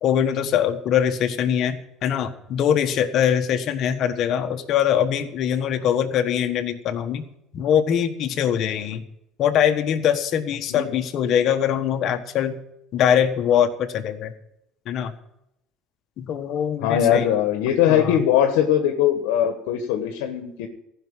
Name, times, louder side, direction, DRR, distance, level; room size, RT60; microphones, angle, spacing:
voice 1, 0.0-7.3 7.5-9.0 9.4-12.6 12.9-14.3 14.8-15.1 16.2-17.3 17.9-18.2, left 9 dB, 55° left, 6 dB, 1.4 m, -22 dB
voice 2, 16.8-20.7, left 10 dB, 85° left, 5 dB, 1.3 m, -20 dB
15.0 x 6.0 x 8.9 m, 0.81 s
supercardioid pair, 110°, 0 cm